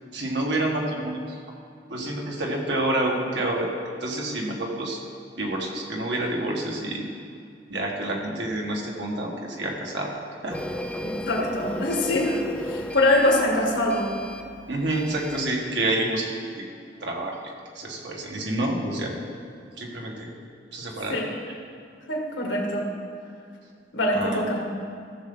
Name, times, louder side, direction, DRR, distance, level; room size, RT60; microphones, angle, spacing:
voice 1, 0.1-1.2 1.9-3.7 4.0-5.0 5.4-7.0 7.7-9.3 9.6-10.1 10.4-10.5 14.7-16.3 17.0-17.3 17.8-19.1 19.8-20.3 20.7-21.2 24.1-24.4, right 1 dB, 75° right, -1 dB, 1.7 m, -28 dB
Printer, 10.5-15.5, equal, 5° left, 0.4 m, -35 dB
voice 2, 11.0-12.4 12.7-14.1 21.1-21.3 22.1-22.9 23.9-24.6, left 1 dB, 80° left, 0 dB, 1.8 m, -23 dB
15.0 x 6.9 x 3.9 m, 2.4 s
head